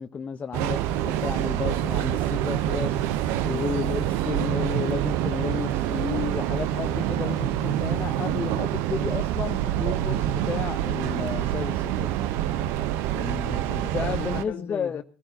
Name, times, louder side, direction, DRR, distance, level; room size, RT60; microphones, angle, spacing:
voice 1, 0.0-12.5 13.9-15.0, left 6 dB, 35° left, 0.7 m, -32 dB
Train, 0.5-14.4, right 12 dB, 75° right, 0.7 m, -26 dB
voice 2, 3.3-3.7 13.1-15.0, left 7 dB, 60° left, 1.7 m, -37 dB
21.5 x 14.0 x 2.7 m
supercardioid pair, 85°, 4 cm